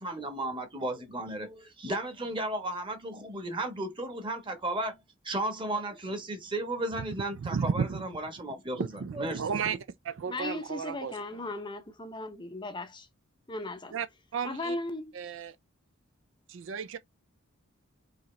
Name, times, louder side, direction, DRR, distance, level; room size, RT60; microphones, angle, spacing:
voice 1, 0.0-5.0 5.2-8.8 9.2-9.4, right 1 dB, 25° right, 1.1 m, -34 dB
voice 2, 7.3-8.0 8.8-9.8 10.0-11.4 13.9-14.1 14.3-14.8 15.1-15.6 16.5-17.0, right 6 dB, 60° right, 0.4 m, -33 dB
voice 3, 10.3-13.1 13.5-13.9 14.4-15.1, left 2 dB, 20° left, 0.6 m, -37 dB
4.8 x 2.9 x 3.2 m
head